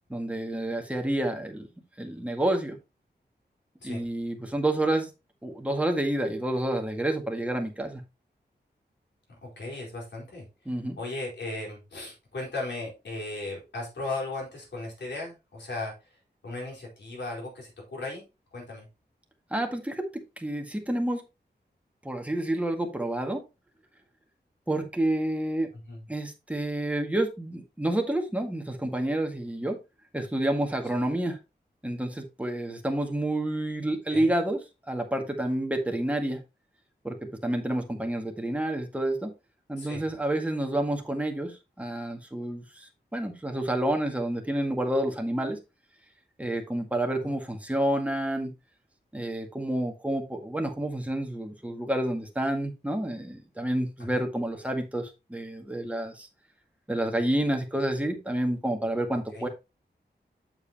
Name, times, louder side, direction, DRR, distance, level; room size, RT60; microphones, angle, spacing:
voice 1, 0.1-1.7 2.0-2.8 3.8-5.1 5.4-8.0 10.7-11.0 19.5-21.2 22.0-23.4 24.7-25.7 26.1-29.8 30.1-31.4 31.8-34.6 34.9-36.4 37.0-39.3 39.7-45.6 46.4-48.5 49.1-56.3 56.9-59.5, right 1 dB, 10° right, 3 dB, 1.9 m, -29 dB
voice 2, 9.4-10.4 11.0-16.2 16.4-18.2 18.5-18.9 25.9-26.0 34.1-34.3 39.8-40.1 47.2-47.3 54.0-54.2 59.3-59.5, left 2 dB, 90° left, -2 dB, 4.6 m, -36 dB
8.1 x 7.2 x 2.9 m, 0.25 s
wide cardioid pair, 100°, 18 cm